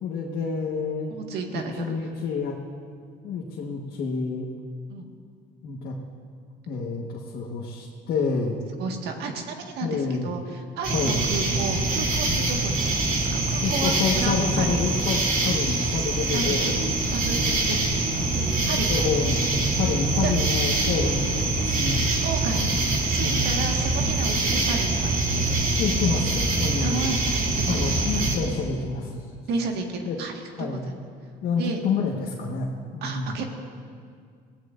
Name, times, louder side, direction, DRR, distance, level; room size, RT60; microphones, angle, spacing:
voice 1, 0.0-1.1 1.5-2.6 3.2-4.5 5.6-6.0 6.7-8.6 9.8-10.3 10.9-11.2 13.6-16.9 17.4-17.7 18.9-22.3 22.7-23.5 25.8-27.0 27.7-29.2 30.1-30.2 30.6-30.9 31.4-33.4, left 5 dB, 70° left, -3 dB, 1.5 m, -28 dB
voice 2, 1.1-1.8 4.9-5.1 8.8-14.8 16.3-16.7 17.1-17.8 18.1-19.1 20.2-20.3 22.1-22.6 23.1-25.5 26.8-27.9 29.5-30.3 30.6-30.9 31.6-31.8 33.0-33.4, right 4 dB, 80° right, 2 dB, 1.7 m, -32 dB
sound 1, 10.8-28.4, right 2 dB, 60° right, 3.1 m, -24 dB
22.0 x 16.5 x 2.6 m, 2.1 s
cardioid pair, 110°, 17 cm